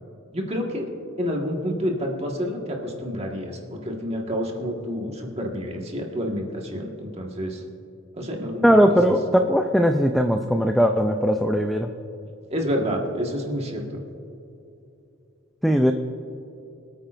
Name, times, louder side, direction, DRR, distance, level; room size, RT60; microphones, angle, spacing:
voice 1, 0.3-0.9 1.2-7.6 8.1-8.6 9.0-9.1 12.5-14.0, equal, 30° right, 0 dB, 1.6 m, -28 dB
voice 2, 8.6-11.9 15.6-15.9, equal, ahead, 4 dB, 0.4 m, -19 dB
24.5 x 8.9 x 2.5 m, 2.7 s
head